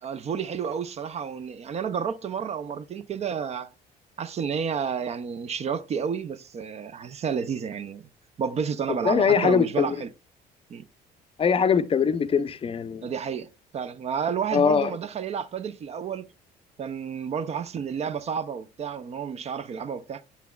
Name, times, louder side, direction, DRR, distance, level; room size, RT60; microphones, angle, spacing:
voice 1, 0.0-3.7 4.2-8.1 8.4-10.1 10.7-10.8 13.0-16.3 16.8-20.2, right 7 dB, 40° right, 0.4 m, -31 dB
voice 2, 8.9-10.0 11.4-13.1 14.5-14.9, left 6 dB, 35° left, 0.5 m, -22 dB
8.3 x 5.7 x 2.3 m
cardioid pair, 110°, 17 cm